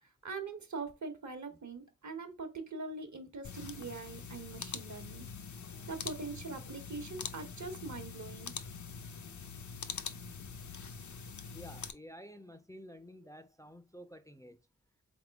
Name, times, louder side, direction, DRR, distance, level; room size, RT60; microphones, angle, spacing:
voice 1, 0.0-5.3 5.9-8.5, right 3 dB, 65° right, 1.1 m, -43 dB
sound 1, 3.4-11.9, left 6 dB, 70° left, 0.6 m, -44 dB
voice 2, 11.5-14.6, equal, 10° left, 0.4 m, -51 dB
3.9 x 3.6 x 3.4 m
wide cardioid pair, 65°, 31 cm